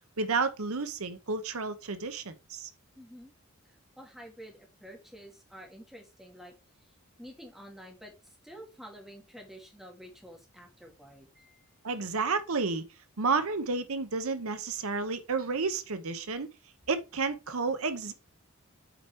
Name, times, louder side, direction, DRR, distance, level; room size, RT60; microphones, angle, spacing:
voice 1, 0.2-2.7 11.8-12.9 13.2-16.5 16.9-18.1, right 4 dB, 75° right, 0.9 m, -31 dB
voice 2, 2.9-3.3 3.6-6.5 6.8-6.9 7.2-11.7, equal, ahead, 2.1 m, -49 dB
8.0 x 4.5 x 4.5 m
head